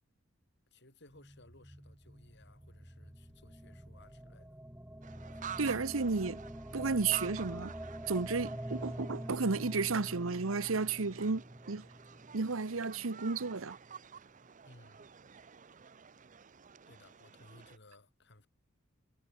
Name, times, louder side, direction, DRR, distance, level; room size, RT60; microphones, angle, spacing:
voice 1, 0.7-4.6 5.3-5.4 14.6-15.1 16.9-18.5, left 2 dB, 60° left, 5.9 m, -60 dB
sound 1, 1.1-13.3, right 1 dB, 10° right, 1.5 m, -46 dB
sound 2, 5.0-17.8, right 7 dB, 40° right, 0.7 m, -51 dB
voice 2, 5.6-6.4 6.7-7.7 8.1-11.9 12.3-13.8, right 4 dB, 85° right, 1.0 m, -33 dB
head